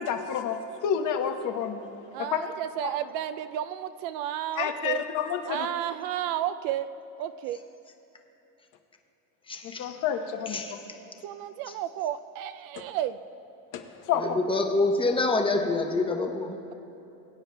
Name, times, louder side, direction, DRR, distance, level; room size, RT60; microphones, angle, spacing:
voice 1, 0.0-1.8 2.2-2.4 2.8-2.9 4.6-5.7 9.8-10.6 13.7-14.4, left 8 dB, 50° left, 5 dB, 1.0 m, -29 dB
voice 2, 2.1-5.0 5.5-6.9 7.2-7.6 10.9-13.2, right 11 dB, 60° right, 11 dB, 0.5 m, -32 dB
voice 3, 9.5-9.9 10.5-10.7 14.2-16.6, left 3 dB, 15° left, 3 dB, 0.8 m, -26 dB
22.0 x 9.0 x 2.2 m, 3.0 s
cardioid pair, 135°, 40 cm